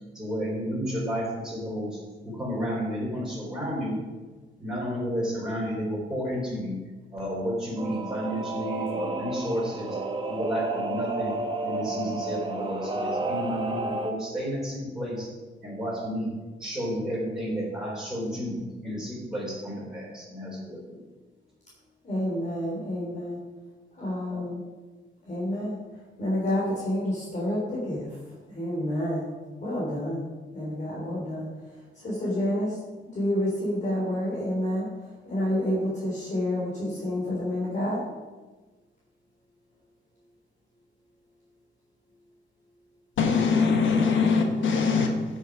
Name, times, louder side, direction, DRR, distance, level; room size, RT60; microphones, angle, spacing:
voice 1, 0.1-2.0 2.2-4.0 4.6-6.8 7.1-10.0 10.3-11.4 11.6-15.3 15.6-16.3 16.6-21.0, equal, 5° right, -7 dB, 4.2 m, -31 dB
Singing / Musical instrument, 7.8-14.1, right 3 dB, 25° right, 1.3 m, -31 dB
voice 2, 22.0-23.4 24.0-24.6 25.3-25.8 26.2-28.1 28.5-29.3 29.6-30.2 30.5-31.5 32.0-32.8 33.2-34.9 35.3-38.0, left 1 dB, 40° left, -6 dB, 3.4 m, -28 dB
voice 3, 43.2-45.4, left 5 dB, 80° left, 3 dB, 1.5 m, -22 dB
16.0 x 6.5 x 5.1 m, 1.3 s
wide cardioid pair, 145°, 20 cm